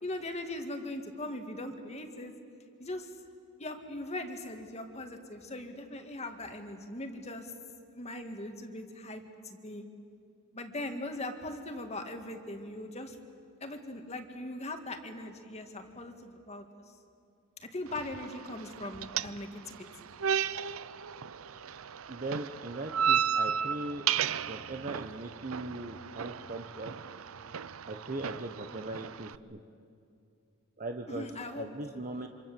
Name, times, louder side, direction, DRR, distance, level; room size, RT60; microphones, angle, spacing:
voice 1, 0.0-2.3 2.8-3.1 3.6-7.5 7.9-9.8 10.5-13.2 13.6-16.6 17.6-20.1 31.1-32.0, left 1 dB, 30° left, 5 dB, 2.0 m, -40 dB
sound 1, 17.9-29.4, right 8 dB, 85° right, 0.6 m, -34 dB
voice 2, 22.1-24.0 24.5-26.9 27.9-29.6 30.8-31.3 31.6-32.3, right 2 dB, 40° right, 4 dB, 1.1 m, -39 dB
27.0 x 26.5 x 7.7 m, 2.5 s
head